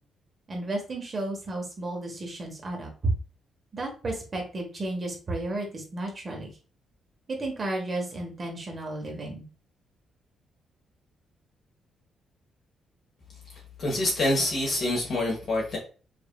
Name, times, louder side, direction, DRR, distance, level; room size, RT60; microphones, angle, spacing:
voice 1, 0.5-3.1 3.7-6.5 7.3-9.4, right 2 dB, 25° right, 2 dB, 1.0 m, -33 dB
voice 2, 13.8-15.8, left 1 dB, 45° left, -3 dB, 1.2 m, -26 dB
5.0 x 2.6 x 2.3 m, 0.36 s
cardioid pair, 175°, 0 cm